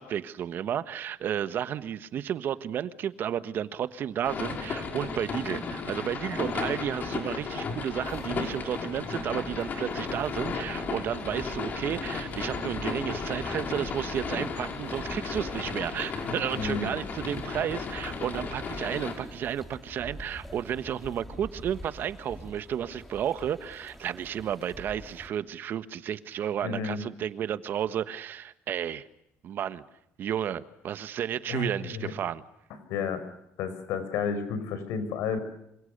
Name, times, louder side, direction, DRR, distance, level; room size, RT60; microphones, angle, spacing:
voice 1, 0.0-29.0 29.4-29.8 30.2-32.4, right 9 dB, 50° right, 13 dB, 1.4 m, -32 dB
sound 1, 4.2-19.1, left 4 dB, 40° left, 5.5 m, -34 dB
sound 2, 8.0-25.3, equal, ahead, 2.8 m, -46 dB
voice 2, 16.5-17.0 26.6-27.0 31.5-32.1 32.9-33.2 33.6-35.4, left 5 dB, 80° left, 11 dB, 5.7 m, -31 dB
27.5 x 26.5 x 6.8 m, 0.79 s
cardioid pair, 140°, 5 cm